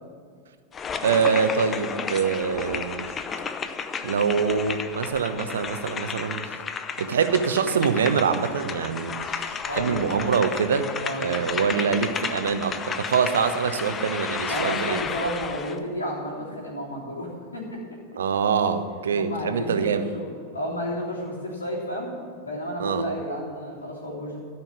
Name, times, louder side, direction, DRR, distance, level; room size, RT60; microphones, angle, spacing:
sound 1, 0.7-15.8, left 6 dB, 25° left, 0.6 m, -33 dB
voice 1, 1.0-3.1 4.0-6.5 7.0-10.9 11.2-15.0 18.2-20.0 22.8-23.0, right 6 dB, 65° right, 9 dB, 0.8 m, -24 dB
voice 2, 9.6-10.3 11.0-11.7 14.4-17.8 19.1-20.3 20.5-22.1 22.4-24.4, equal, 80° left, -4 dB, 3.3 m, -32 dB
13.0 x 5.7 x 9.3 m, 2.1 s
figure-of-eight pair, 90°, 0 cm